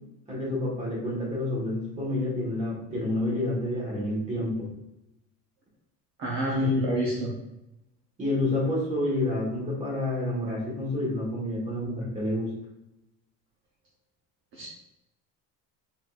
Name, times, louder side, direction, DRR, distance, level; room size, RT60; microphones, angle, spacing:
voice 1, 0.3-4.7 6.5-7.2 8.2-12.5, left 1 dB, 20° right, -5 dB, 1.4 m, -29 dB
voice 2, 6.2-7.3 14.5-14.7, right 2 dB, 35° right, -5 dB, 0.8 m, -29 dB
4.0 x 3.9 x 2.4 m, 0.88 s
cardioid pair, 180°, 37 cm